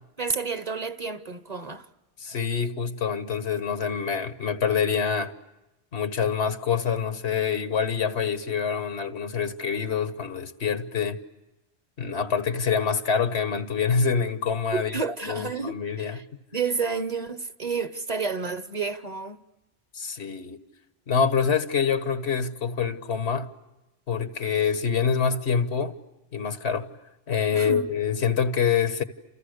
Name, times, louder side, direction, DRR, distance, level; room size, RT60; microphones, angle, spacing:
voice 1, 0.2-1.9 14.7-16.2 16.5-19.4 27.5-27.9, right 5 dB, 40° right, 1.1 m, -30 dB
voice 2, 2.2-5.3 5.9-11.2 12.0-15.0 15.3-16.2 19.9-20.6 21.1-23.5 24.1-25.9 26.3-26.9 27.3-29.0, left 6 dB, 85° left, 1.7 m, -26 dB
30.0 x 28.5 x 6.6 m
omnidirectional pair, 1.1 m